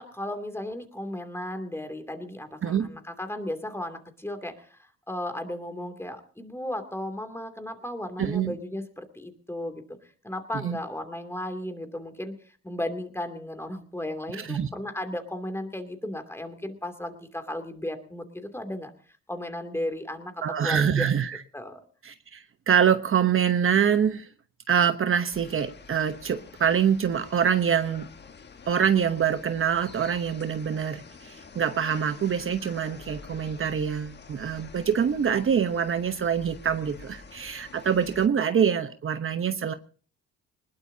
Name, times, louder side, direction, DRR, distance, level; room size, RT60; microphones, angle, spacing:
voice 1, 0.0-10.0 10.2-18.9 19.3-21.1 21.5-21.8, left 1 dB, 10° left, 6 dB, 2.7 m, -35 dB
voice 2, 8.2-8.5 10.6-10.8 14.3-14.7 20.4-21.4 22.0-24.3 24.7-28.1 28.7-39.7, right 8 dB, 45° right, 8 dB, 1.0 m, -25 dB
sound 1, 25.3-38.3, left 5 dB, 35° left, 1.4 m, -47 dB
20.5 x 20.5 x 2.8 m, 0.42 s
cardioid pair, 90°, 30 cm